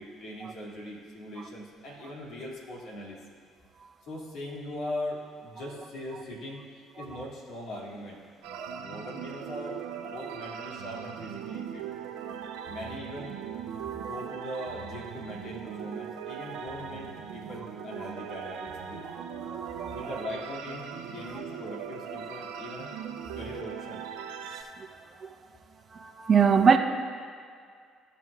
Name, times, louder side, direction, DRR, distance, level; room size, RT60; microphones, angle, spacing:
voice 1, 0.0-3.2 4.0-11.9 12.7-13.3 13.9-19.0 19.9-22.9 23.3-24.1, left 1 dB, 65° left, -3 dB, 2.3 m, -40 dB
sound 1, 8.4-24.6, right 8 dB, 75° right, 0.7 m, -39 dB
voice 2, 13.7-14.3 19.1-20.0 24.8-24.9 25.2-25.3 25.9-26.8, right 6 dB, 45° right, 6 dB, 0.8 m, -25 dB
15.5 x 6.1 x 2.4 m, 2.1 s
hypercardioid pair, 60°, 0 cm